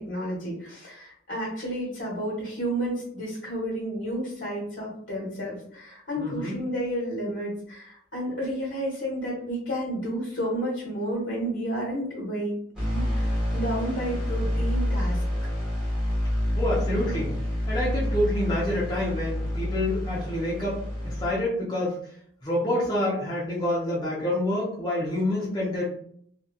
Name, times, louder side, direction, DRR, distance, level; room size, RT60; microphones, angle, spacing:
voice 1, 0.0-12.5 12.9-15.2, right 1 dB, 80° left, -5 dB, 1.1 m, -31 dB
voice 2, 6.2-6.6 16.5-17.3 17.7-22.0 22.4-25.8, left 1 dB, 20° left, -8 dB, 0.7 m, -27 dB
sound 1, 12.8-21.3, left 1 dB, 5° right, 1.0 m, -28 dB
2.8 x 2.3 x 2.3 m, 0.65 s
head